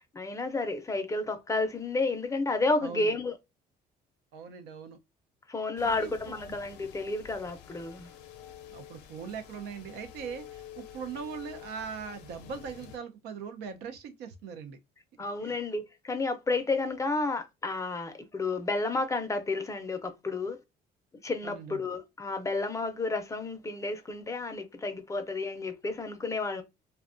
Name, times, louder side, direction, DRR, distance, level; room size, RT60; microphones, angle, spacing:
voice 1, 0.1-3.3 5.5-8.1 15.2-20.6 21.2-26.6, left 3 dB, 20° left, 0.5 m, -31 dB
voice 2, 2.8-3.2 4.3-5.0 5.8-6.2 8.7-14.8 15.4-15.6 21.4-21.8, right 6 dB, 85° right, 0.5 m, -40 dB
sound 1, 5.8-13.0, left 10 dB, 85° left, 0.5 m, -49 dB
2.5 x 2.2 x 2.4 m
cardioid pair, 110°, 17 cm